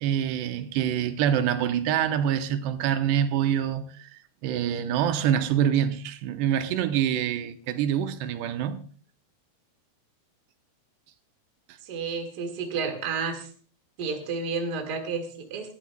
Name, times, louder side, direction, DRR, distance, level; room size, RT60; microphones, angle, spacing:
voice 1, 0.0-8.8, right 9 dB, 85° right, 2.8 m, -26 dB
voice 2, 11.8-13.5 14.0-15.8, right 5 dB, 45° right, 1.3 m, -31 dB
21.0 x 13.0 x 2.2 m
omnidirectional pair, 4.8 m